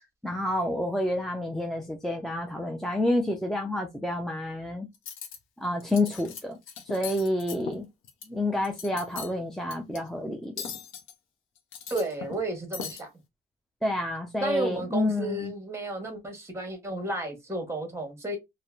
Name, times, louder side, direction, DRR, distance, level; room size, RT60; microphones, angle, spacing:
voice 1, 0.2-4.9 5.6-6.6 6.9-7.9 8.3-10.7 13.8-15.5, left 1 dB, ahead, 0.4 m, -29 dB
Cutlery silverware, 4.9-5.4 5.8-6.4 6.7-8.3 8.6-9.3 9.7-10.0 10.6-11.1 11.6-12.4 12.7-13.0, left 7 dB, 80° left, 0.6 m, -39 dB
voice 2, 11.9-13.1 14.4-18.4, right 1 dB, 15° right, 1.0 m, -32 dB
2.8 x 2.1 x 2.3 m
cardioid pair, 90°, 20 cm